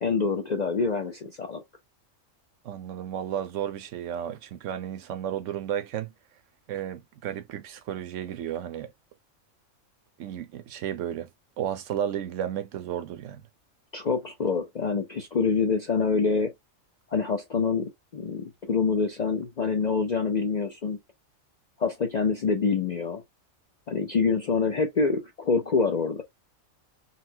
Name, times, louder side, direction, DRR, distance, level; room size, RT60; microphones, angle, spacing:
voice 1, 0.0-1.6 13.9-16.5 17.1-21.0 21.8-23.2 23.9-26.2, left 5 dB, 55° left, 0.5 m, -26 dB
voice 2, 2.6-6.1 6.7-8.9 10.2-11.3 11.6-13.4, right 10 dB, 70° right, 0.9 m, -33 dB
4.0 x 2.1 x 2.7 m
omnidirectional pair, 1.4 m